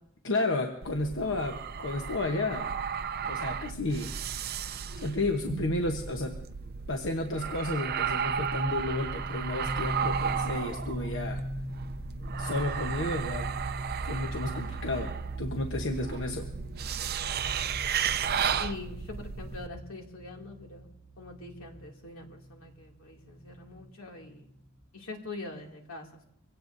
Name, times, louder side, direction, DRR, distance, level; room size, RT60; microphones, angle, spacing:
voice 1, 0.2-2.7 3.2-4.1 5.0-6.4 6.9-11.4 12.4-13.5 14.0-16.5, left 2 dB, 65° left, 3 dB, 1.0 m, -32 dB
sound 1, 0.8-19.7, right 7 dB, 50° right, 0.5 m, -34 dB
sound 2, 8.3-23.7, right 1 dB, 40° left, 1.8 m, -40 dB
voice 2, 18.6-24.5 24.9-26.2, left 3 dB, 85° left, 1 dB, 2.5 m, -43 dB
24.0 x 17.0 x 2.6 m, 0.74 s
head